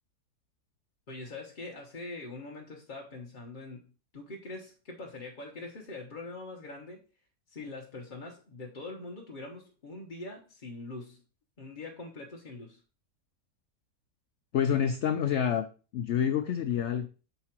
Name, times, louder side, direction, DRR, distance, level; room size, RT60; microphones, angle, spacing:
voice 1, 1.1-7.0 7.5-11.2 11.6-12.8, left 2 dB, 40° left, 0 dB, 0.7 m, -43 dB
voice 2, 14.5-15.7 15.9-17.1, left 8 dB, 85° left, 9 dB, 0.6 m, -27 dB
6.6 x 4.8 x 4.4 m, 0.36 s
omnidirectional pair, 1.8 m